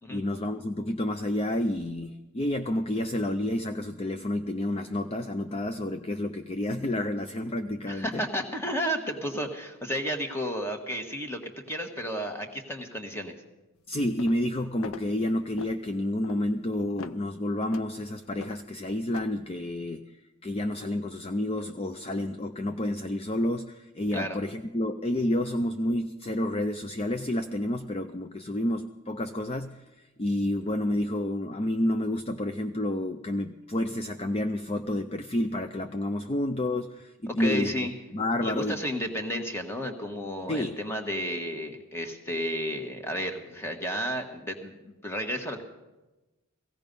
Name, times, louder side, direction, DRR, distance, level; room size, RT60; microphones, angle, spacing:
voice 1, 0.1-8.2 13.9-20.0 20.4-29.8 30.2-38.8 40.5-40.8, left 1 dB, 25° left, 7 dB, 0.5 m, -30 dB
voice 2, 7.9-13.3 24.1-24.4 37.3-37.9 38.4-45.6, equal, 10° left, 4 dB, 1.4 m, -32 dB
sound 1, 14.2-14.5 14.8-15.1 15.6-15.8 16.2-16.4 17.0-17.3 17.7-17.9 18.4-18.6 19.1-19.4, left 4 dB, 75° left, 0.6 m, -41 dB
17.0 x 16.0 x 5.3 m, 1.1 s
head